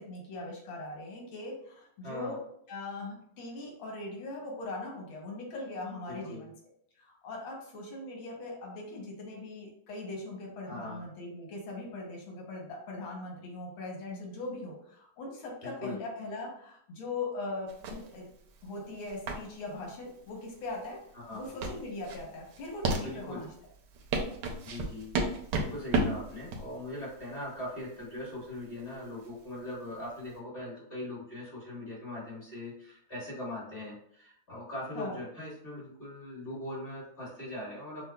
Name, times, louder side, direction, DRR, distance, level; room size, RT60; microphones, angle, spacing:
voice 1, 0.0-2.4 2.7-6.5 7.0-18.3 18.6-21.0 21.3-23.5 35.0-35.2, left 2 dB, 90° left, -1 dB, 1.7 m, -40 dB
voice 2, 2.0-2.4 6.1-6.5 10.7-11.0 15.6-16.0 21.1-21.5 23.0-23.4 24.6-25.2 25.6-38.0, left 1 dB, 30° left, -7 dB, 1.4 m, -40 dB
sound 1, 17.7-30.3, right 3 dB, 70° right, 1.1 m, -35 dB
5.9 x 2.1 x 2.2 m, 0.67 s
omnidirectional pair, 2.1 m